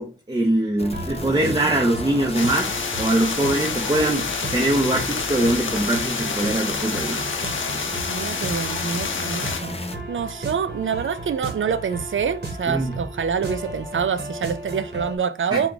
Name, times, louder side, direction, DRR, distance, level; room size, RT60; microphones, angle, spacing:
voice 1, 0.0-2.7 3.0-7.2 12.7-12.9 15.5-15.7, right 1 dB, 20° right, 0.8 m, -22 dB
sound 1, 0.8-10.0, left 3 dB, 30° left, 0.6 m, -33 dB
sound 2, 0.8-15.2, right 2 dB, 55° right, 1.2 m, -34 dB
sound 3, 2.3-9.6, left 5 dB, 75° left, 0.5 m, -29 dB
voice 2, 8.1-9.7 10.1-15.7, right 6 dB, 75° right, 0.5 m, -26 dB
4.5 x 2.3 x 3.9 m
wide cardioid pair, 80°, 20 cm